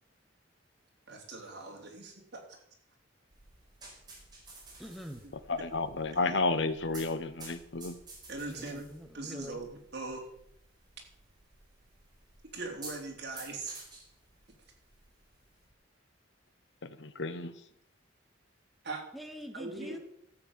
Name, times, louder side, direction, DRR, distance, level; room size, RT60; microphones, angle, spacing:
voice 1, 1.1-2.4 6.1-6.2 8.3-8.8 9.1-9.7 9.9-10.2 12.5-13.8 18.8-19.0 19.6-20.0, right 3 dB, 60° right, 0 dB, 3.6 m, -40 dB
sound 1, 3.3-15.7, right 2 dB, 20° right, 4.8 m, -53 dB
voice 2, 4.8-5.2 8.5-9.6 19.1-20.0, equal, ahead, 5 dB, 1.0 m, -44 dB
voice 3, 5.5-8.0 16.8-17.5, left 3 dB, 65° left, 12 dB, 1.0 m, -31 dB
13.0 x 8.3 x 7.4 m, 0.72 s
head